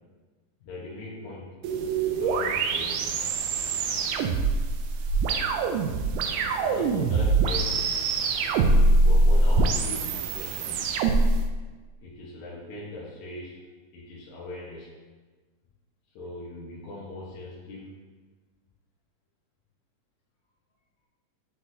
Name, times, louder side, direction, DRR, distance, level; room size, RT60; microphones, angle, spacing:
voice 1, 0.6-1.5 2.1-3.1 6.6-7.9 9.0-10.9 12.0-13.6 13.9-14.9 16.1-17.9, left 2 dB, 70° left, -7 dB, 2.3 m, -40 dB
sound 1, 1.6-11.4, right 3 dB, 80° right, 1.9 m, -24 dB
9.5 x 4.0 x 2.7 m, 1.3 s
omnidirectional pair, 3.9 m